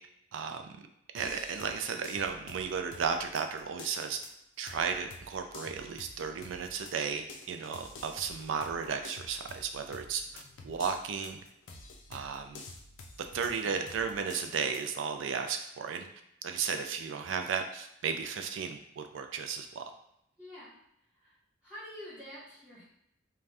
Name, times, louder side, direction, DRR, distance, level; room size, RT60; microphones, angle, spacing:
voice 1, 0.3-0.8 1.1-4.2 4.6-11.4 12.1-12.6 13.3-16.1 16.4-19.8, right 6 dB, 85° right, 6 dB, 0.3 m, -34 dB
sound 1, 1.2-14.9, left 3 dB, 85° left, 0.4 m, -50 dB
voice 2, 20.4-20.8 21.1-21.4 21.6-22.8, equal, 5° right, -12 dB, 1.1 m, -47 dB
2.5 x 2.3 x 3.3 m, 0.79 s
head